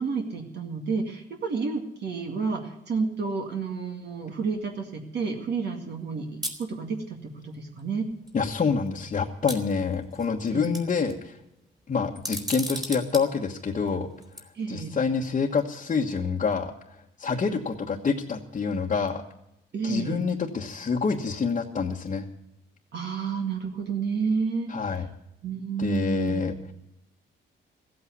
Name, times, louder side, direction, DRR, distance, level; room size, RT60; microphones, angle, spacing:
voice 1, 0.0-8.1 10.5-10.8 14.5-15.0 19.7-20.2 22.9-24.7 25.4-26.4, right 5 dB, 60° right, 2 dB, 2.2 m, -30 dB
sound 1, 6.4-6.6 7.8-7.9 8.3-8.4 9.5-10.3 10.6-11.1 12.2-13.2 14.2-14.4, equal, 20° right, 3.2 m, -34 dB
voice 2, 8.3-11.4 11.9-14.1 14.7-19.2 19.8-22.3 24.7-25.1 25.8-26.5, left 5 dB, 40° left, -2 dB, 1.3 m, -27 dB
15.0 x 8.5 x 9.5 m, 0.81 s
cardioid pair, 90°, 20 cm